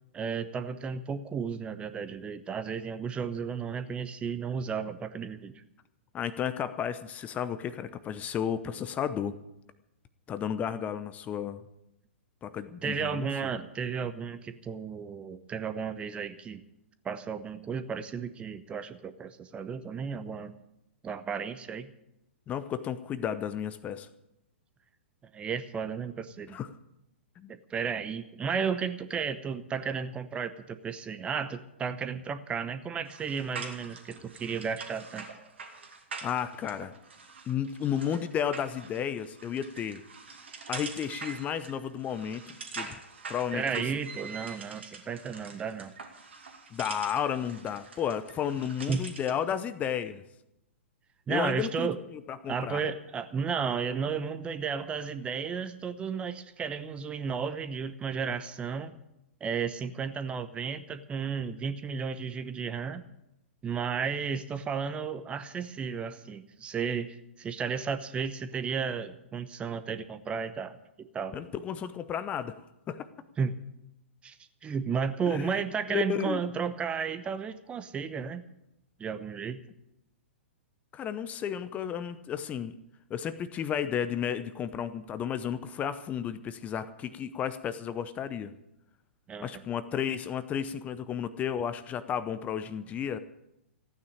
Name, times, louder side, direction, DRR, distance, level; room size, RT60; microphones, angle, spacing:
voice 1, 0.1-5.5 12.8-16.6 17.0-20.6 21.0-21.9 25.3-26.6 27.5-35.3 43.5-45.9 48.9-49.1 51.3-52.0 52.5-58.9 59.4-63.1 63.6-71.4 73.4-73.5 74.2-74.4 74.6-78.5 79.0-79.6 89.3-89.6, right 6 dB, 15° right, 12 dB, 0.9 m, -33 dB
voice 2, 6.1-9.3 10.3-11.6 12.4-13.3 22.5-24.1 26.5-26.7 27.4-27.5 36.2-36.9 37.5-40.0 40.7-42.9 43.3-43.6 46.7-50.2 51.3-51.9 52.3-52.8 71.3-72.6 72.9-73.1 75.3-75.6 75.9-76.4 80.9-82.7 83.1-88.5 89.4-93.2, left 8 dB, 20° left, 13 dB, 0.7 m, -33 dB
sound 1, 33.0-49.4, right 4 dB, 70° right, 2.3 m, -44 dB
14.5 x 9.5 x 8.6 m, 0.87 s
figure-of-eight pair, 110°, 7 cm